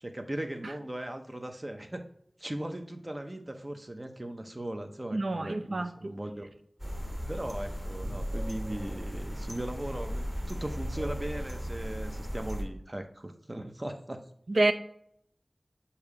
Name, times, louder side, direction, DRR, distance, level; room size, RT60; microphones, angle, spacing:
voice 1, 0.0-2.0 2.4-6.5 7.3-14.3, right 1 dB, 35° right, 5 dB, 0.7 m, -38 dB
voice 2, 5.1-6.1 14.5-14.7, right 2 dB, 85° right, 9 dB, 0.4 m, -28 dB
sound 1, 6.8-12.6, equal, 15° right, 1.6 m, -36 dB
6.9 x 2.8 x 4.7 m, 0.70 s
wide cardioid pair, 55°, 0 cm